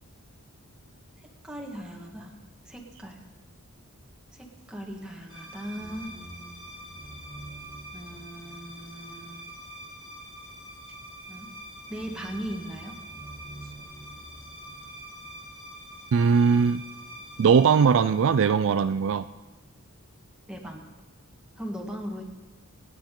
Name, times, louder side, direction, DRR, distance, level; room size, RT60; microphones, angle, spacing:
voice 1, 1.2-2.4 2.6-3.2 4.4-6.1 7.9-9.4 11.3-11.5 11.9-12.9 20.5-20.9 21.6-22.2, equal, 5° right, -1 dB, 1.7 m, -38 dB
sound 1, 5.3-18.9, right 1 dB, 25° left, 3.2 m, -44 dB
voice 2, 16.1-16.8 17.4-19.3, right 6 dB, 60° right, 12 dB, 0.3 m, -20 dB
25.5 x 9.6 x 3.8 m, 1.3 s
head